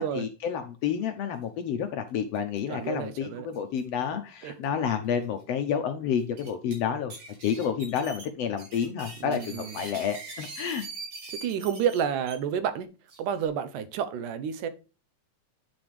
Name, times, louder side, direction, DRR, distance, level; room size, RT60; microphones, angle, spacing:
voice 1, 0.0-7.1 7.4-10.9, left 8 dB, 70° left, 1.6 m, -30 dB
sound 1, 2.4-2.6 2.8-2.9 3.5-3.8 4.6-4.7 5.2-5.3 6.2-6.7 7.1-12.4 13.1-13.5, right 3 dB, 60° right, 4.5 m, -42 dB
voice 2, 2.7-3.5 4.4-4.5 9.2-9.7 11.4-12.9 13.2-14.7, right 8 dB, 85° right, 2.4 m, -30 dB
9.5 x 6.1 x 3.2 m
omnidirectional pair, 3.6 m